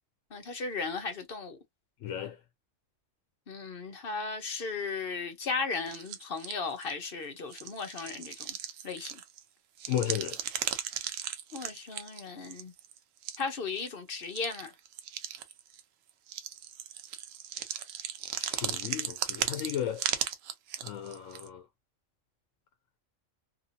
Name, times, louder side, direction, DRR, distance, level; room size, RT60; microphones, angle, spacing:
voice 1, 0.3-1.6 3.5-8.5 8.8-9.2 11.5-12.7 13.4-14.7, left 4 dB, 50° left, 0.9 m, -36 dB
voice 2, 2.0-2.4 9.9-10.4 18.3-20.1 20.8-21.7, left 10 dB, 80° left, 1.0 m, -34 dB
sound 1, 5.9-6.9 7.5-9.4 9.8-13.0 13.2-13.5 13.8-13.9 14.2-15.8 16.3-21.5, right 9 dB, 80° right, 1.0 m, -36 dB
2.8 x 2.7 x 2.5 m
omnidirectional pair, 1.3 m